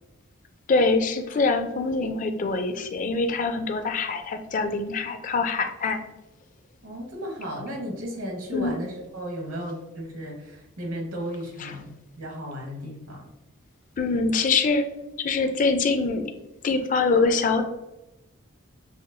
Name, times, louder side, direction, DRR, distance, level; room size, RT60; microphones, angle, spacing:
voice 1, 0.7-6.0 8.5-8.8 11.6-11.7 14.0-14.8 15.2-16.3 16.6-17.6, left 3 dB, 40° left, 7 dB, 0.3 m, -24 dB
voice 2, 6.8-13.3, equal, 90° right, 0 dB, 1.1 m, -35 dB
5.8 x 2.5 x 2.2 m, 0.95 s
head